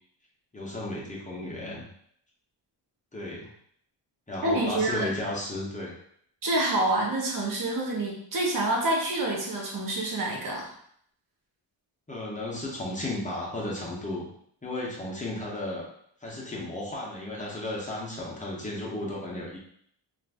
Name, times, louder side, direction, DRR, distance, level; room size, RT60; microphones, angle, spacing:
voice 1, 0.5-1.9 3.1-3.5 4.3-5.9 12.1-14.3 14.6-15.8 16.2-19.6, left 1 dB, 15° left, -4 dB, 0.6 m, -34 dB
voice 2, 4.4-5.1 6.4-10.7, right 2 dB, 45° right, -2 dB, 0.8 m, -27 dB
2.5 x 2.4 x 3.3 m, 0.66 s
wide cardioid pair, 180°, 45 cm